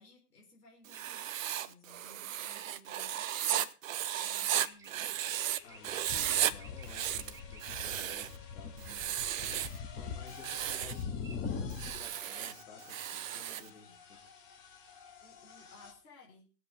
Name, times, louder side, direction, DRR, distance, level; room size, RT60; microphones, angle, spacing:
voice 1, 0.0-3.7 4.1-5.1 8.6-9.4 13.4-14.0 15.2-16.5, left 2 dB, 75° left, -1 dB, 4.2 m, -60 dB
Writing, 0.8-5.6 5.8-6.5 6.8-8.4 8.8-9.8 10.3-11.0 11.7-13.7, right 11 dB, 55° right, 0.9 m, -35 dB
sound 1, 0.9-1.5 4.1-7.8 10.3-10.9 11.1-11.4, right 4 dB, 5° right, 0.7 m, -56 dB
sound 2, 5.0-5.1 5.6-15.9, left 6 dB, 35° left, 3.5 m, -44 dB
voice 2, 5.6-9.7 10.0-14.2, left 5 dB, 55° left, 1 dB, 4.5 m, -54 dB
21.0 x 7.6 x 3.9 m, 0.34 s
hypercardioid pair, 130°, 48 cm